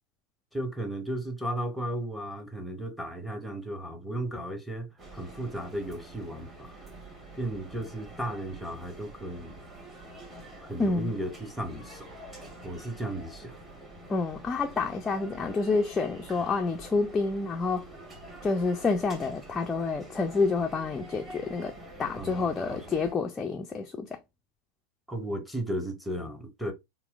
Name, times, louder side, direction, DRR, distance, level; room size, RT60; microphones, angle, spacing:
voice 1, 0.5-6.7 7.4-9.5 10.6-12.1 12.6-13.6 22.2-22.8 25.1-26.7, right 1 dB, ahead, 0.7 m, -35 dB
sound 1, 5.0-23.1, right 2 dB, 20° right, 1.3 m, -47 dB
voice 2, 10.8-11.1 14.1-17.9 18.4-24.2, left 4 dB, 15° left, 0.3 m, -28 dB
4.1 x 2.0 x 2.3 m
figure-of-eight pair, 90°, 0 cm